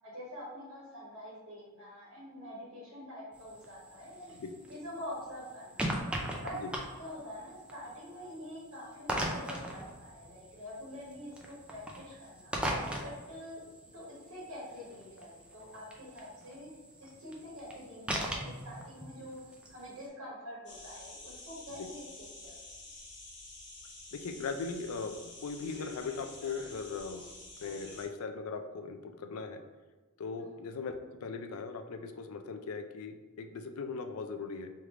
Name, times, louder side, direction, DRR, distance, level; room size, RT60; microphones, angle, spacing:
voice 1, 0.0-4.3 4.7-5.9 6.4-11.3 11.7-12.6 13.0-13.6 13.9-16.7 17.0-22.7 30.4-30.5, equal, 70° right, -6 dB, 1.3 m, -46 dB
sound 1, 3.3-20.1, right 1 dB, 5° right, 0.4 m, -41 dB
sound 2, 20.7-28.1, left 2 dB, 55° left, 1.1 m, -49 dB
voice 2, 24.1-27.2 27.6-29.6 30.2-30.9 31.2-34.7, left 4 dB, 75° left, 7 dB, 0.4 m, -39 dB
3.3 x 3.1 x 3.6 m, 1.2 s
head